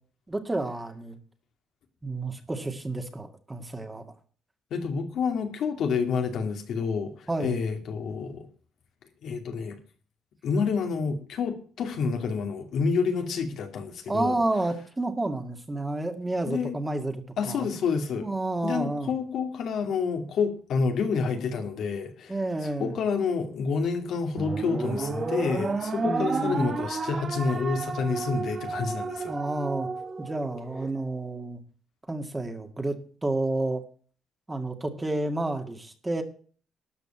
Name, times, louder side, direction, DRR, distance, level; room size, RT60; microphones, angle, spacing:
voice 1, 0.3-1.2 2.0-4.1 7.3-7.6 14.1-17.7 18.2-19.1 22.3-23.0 26.0-26.7 29.3-29.9 30.2-31.6 32.1-33.8 34.5-36.2, right 2 dB, 15° right, 6 dB, 1.9 m, -30 dB
voice 2, 4.7-8.5 9.2-9.8 10.4-14.4 16.5-16.7 17.4-18.3 18.6-22.3 22.8-29.3, left 5 dB, 75° left, 4 dB, 2.3 m, -28 dB
sound 1, 24.4-30.9, right 4 dB, 40° right, 1.6 m, -32 dB
12.5 x 5.3 x 8.9 m, 0.42 s
cardioid pair, 90°, 0 cm